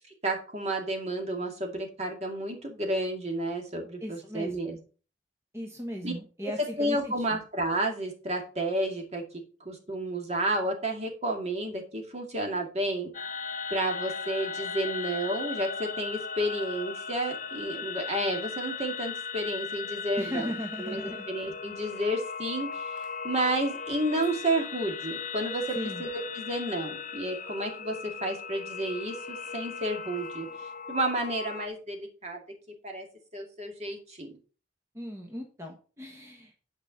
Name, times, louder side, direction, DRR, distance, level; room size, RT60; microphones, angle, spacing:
voice 1, 0.2-4.8 6.0-6.1 6.4-9.2 9.6-13.1 13.7-20.5 20.8-30.5 30.9-32.4 32.8-33.1 33.3-34.3, right 1 dB, 35° right, 2 dB, 2.3 m, -31 dB
voice 2, 4.0-4.5 5.5-7.4 20.2-21.5 25.7-26.0 34.9-36.5, equal, 15° right, 0 dB, 1.4 m, -37 dB
sound 1, 13.1-31.7, left 5 dB, 45° left, 0.6 m, -37 dB
9.1 x 5.3 x 5.4 m, 0.37 s
head